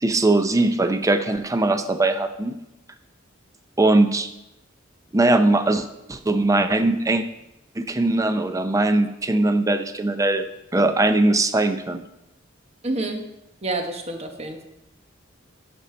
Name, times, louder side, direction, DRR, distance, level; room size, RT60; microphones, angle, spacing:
voice 1, 0.0-2.6 3.8-4.3 5.1-7.2 7.8-10.5 10.7-12.0, right 2 dB, 15° right, 9 dB, 0.5 m, -20 dB
voice 2, 12.8-13.2 13.6-14.6, right 2 dB, 35° right, 4 dB, 1.0 m, -28 dB
10.5 x 5.3 x 4.3 m, 0.91 s
head